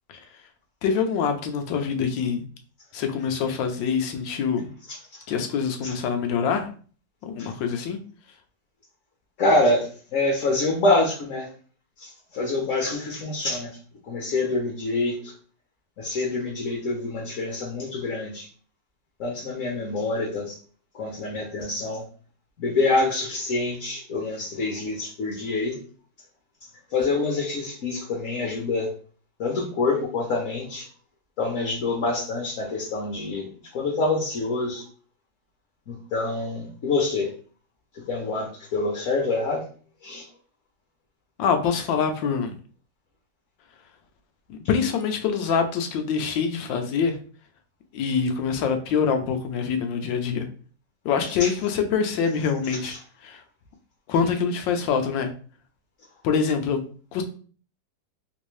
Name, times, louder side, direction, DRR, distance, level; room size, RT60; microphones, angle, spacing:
voice 1, 0.8-2.4 2.9-4.7 5.3-6.7 7.2-8.0 41.4-42.6 44.5-47.2 47.9-50.5 51.0-53.0 53.2-53.4 54.1-55.3 56.2-56.8 57.1-57.2, left 6 dB, 90° left, 6 dB, 1.3 m, -25 dB
voice 2, 4.9-5.2 5.8-5.9 7.4-7.5 9.4-11.5 12.0-13.8 14.0-15.3 16.0-18.5 19.2-20.6 20.9-22.0 22.6-25.8 26.9-29.0 29.4-30.9 31.4-34.8 35.9-37.3 37.9-39.6 40.0-40.3 51.4-51.5 52.6-53.0, left 2 dB, 55° left, -1 dB, 0.9 m, -26 dB
3.4 x 2.6 x 3.1 m, 0.41 s
omnidirectional pair, 2.0 m